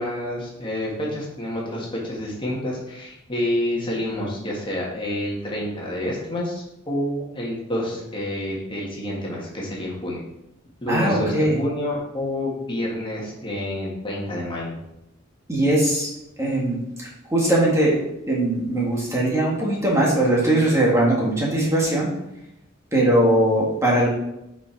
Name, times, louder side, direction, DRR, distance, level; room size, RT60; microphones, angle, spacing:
voice 1, 0.0-10.2 10.8-14.8, left 1 dB, 25° left, -3 dB, 1.8 m, -28 dB
voice 2, 10.9-11.6 15.5-16.1 16.4-18.0 18.3-22.1 22.9-24.1, right 1 dB, 15° right, -4 dB, 1.7 m, -20 dB
6.6 x 5.2 x 4.6 m, 0.86 s
head